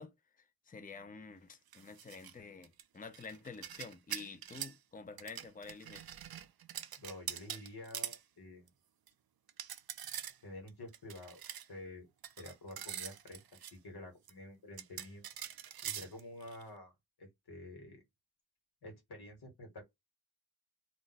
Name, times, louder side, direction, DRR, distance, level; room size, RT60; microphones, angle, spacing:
voice 1, 0.0-6.1, left 4 dB, 20° left, 0.6 m, -49 dB
sound 1, 1.7-2.3 2.6-4.8 5.2-8.2 8.7-8.8 9.1-9.2 9.5-10.4 10.7-11.7 12.2-13.7 14.3-14.4 14.8-16.6, right 10 dB, 75° right, 0.5 m, -44 dB
voice 2, 7.0-8.7 10.4-11.4 11.7-12.1 12.4-13.4 13.7-15.2 15.8-16.9 17.2-18.0 18.8-19.8, left 2 dB, 90° left, 1.3 m, -49 dB
2.5 x 2.1 x 3.9 m
wide cardioid pair, 60°, 37 cm